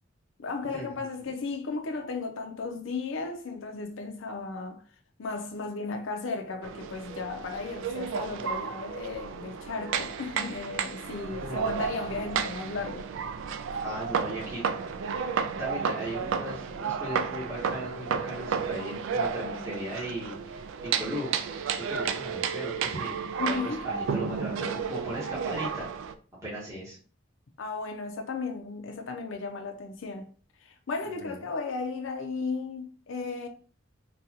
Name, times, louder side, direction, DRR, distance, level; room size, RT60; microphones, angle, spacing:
voice 1, 0.4-4.8 5.2-13.1 23.4-23.8 27.6-30.3 30.6-33.5, left 4 dB, 75° left, 0.5 m, -35 dB
sound 1, 6.6-26.1, right 6 dB, 70° right, 0.3 m, -32 dB
voice 2, 11.4-11.8 13.8-14.6 15.6-21.3 21.7-25.8 26.4-27.0 31.2-31.4, equal, 15° right, 0.9 m, -37 dB
3.9 x 2.3 x 2.7 m
head